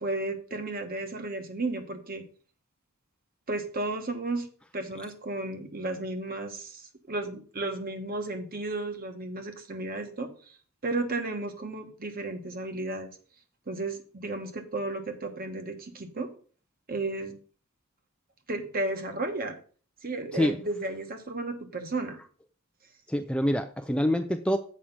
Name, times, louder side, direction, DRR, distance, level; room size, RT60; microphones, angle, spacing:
voice 1, 0.0-2.2 3.5-4.5 4.7-10.6 10.8-13.1 13.7-16.3 16.9-17.4 18.5-19.6 20.0-22.2, right 2 dB, 40° right, 1.2 m, -33 dB
voice 2, 23.1-24.6, left 1 dB, 5° left, 0.3 m, -26 dB
7.4 x 5.0 x 5.8 m
head